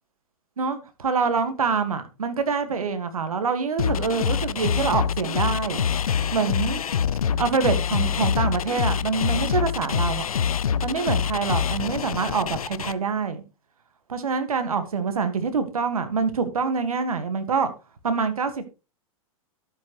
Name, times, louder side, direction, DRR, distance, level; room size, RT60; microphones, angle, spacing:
voice 1, 0.6-5.8 6.3-6.8 7.4-10.3 10.8-13.4 14.1-17.7 18.0-18.7, right 5 dB, 80° right, 1.7 m, -25 dB
sound 1, 3.8-12.9, left 7 dB, 80° left, 0.6 m, -25 dB
13.0 x 7.7 x 3.1 m
hypercardioid pair, 105°, 18 cm